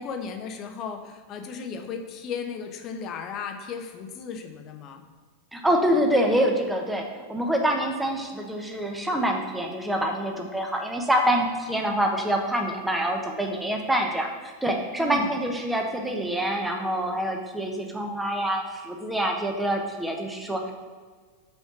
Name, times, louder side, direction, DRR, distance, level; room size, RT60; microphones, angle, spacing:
voice 1, 0.0-5.0 15.0-15.3, left 6 dB, 35° left, 5 dB, 0.7 m, -35 dB
voice 2, 5.5-20.7, right 1 dB, 5° right, 2 dB, 1.0 m, -26 dB
5.6 x 4.6 x 5.8 m, 1.5 s
figure-of-eight pair, 90°, 0 cm